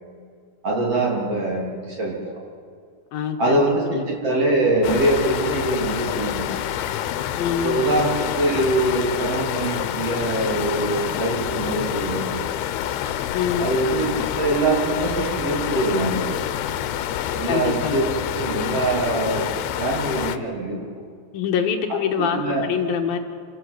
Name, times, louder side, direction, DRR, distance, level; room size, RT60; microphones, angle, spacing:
voice 1, 0.6-2.4 3.4-6.5 7.6-12.4 13.6-14.1 14.3-16.4 17.3-18.0 18.3-19.5 19.8-20.8 22.3-22.6, right 2 dB, 40° right, -2 dB, 4.1 m, -23 dB
voice 2, 3.1-3.7 3.9-4.0 7.4-7.8 13.3-13.7 17.5-18.0 21.3-23.2, left 7 dB, 75° left, 4 dB, 2.8 m, -24 dB
sound 1, 4.8-20.4, left 11 dB, 90° left, 2.8 m, -27 dB
27.5 x 13.0 x 8.0 m, 2.2 s
omnidirectional pair, 4.5 m